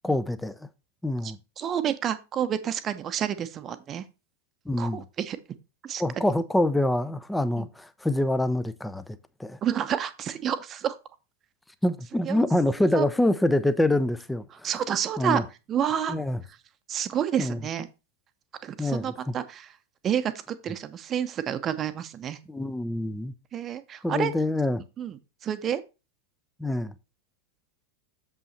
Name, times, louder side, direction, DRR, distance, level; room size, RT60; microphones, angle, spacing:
voice 1, 0.0-0.7 1.0-1.4 4.7-5.0 6.0-9.6 11.8-14.7 15.2-15.4 16.1-16.4 17.4-17.6 18.8-19.3 22.5-23.3 24.0-24.8 26.6-26.9, left 1 dB, 5° left, 0.7 m, -26 dB
voice 2, 1.2-4.0 4.8-5.4 5.8-6.0 7.6-7.7 9.6-11.0 12.2-12.4 12.9-13.0 14.6-15.4 15.7-16.2 16.9-17.9 18.6-19.7 20.0-22.4 23.5-24.3 25.0-25.2 25.4-25.8, right 9 dB, 30° right, 0.9 m, -29 dB
7.4 x 5.5 x 4.2 m
figure-of-eight pair, 90°, 0 cm